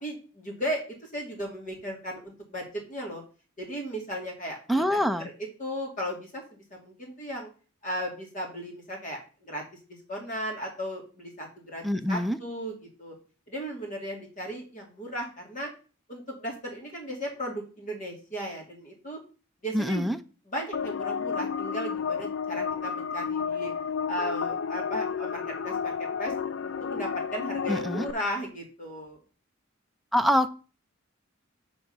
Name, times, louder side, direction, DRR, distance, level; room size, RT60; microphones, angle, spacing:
voice 1, 0.0-3.2 3.6-7.5 7.8-9.6 9.9-13.1 13.5-15.7 16.1-19.2 19.6-20.1 20.5-23.7 24.1-26.3 26.6-29.2, equal, 40° left, 0 dB, 2.8 m, -36 dB
voice 2, 4.7-5.3 11.8-12.4 19.7-20.2 27.7-28.1 30.1-30.5, equal, ahead, 7 dB, 0.5 m, -25 dB
sound 1, 20.7-28.1, left 6 dB, 60° left, 0.4 m, -31 dB
8.1 x 4.7 x 5.5 m, 0.37 s
head